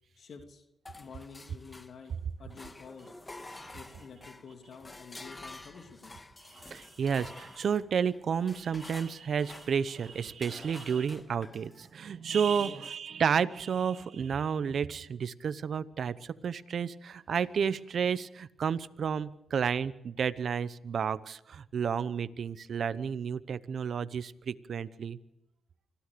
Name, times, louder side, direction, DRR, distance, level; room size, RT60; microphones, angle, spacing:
voice 1, 0.2-2.1 2.4-3.1 3.7-6.2 12.6-12.8, left 5 dB, 65° left, 5 dB, 2.9 m, -49 dB
sound 1, 0.9-2.2 2.5-11.9, left 2 dB, 25° left, 1.7 m, -49 dB
voice 2, 6.5-25.2, right 7 dB, 65° right, 15 dB, 0.9 m, -31 dB
25.5 x 16.0 x 6.9 m, 0.82 s
cardioid pair, 70°, 0 cm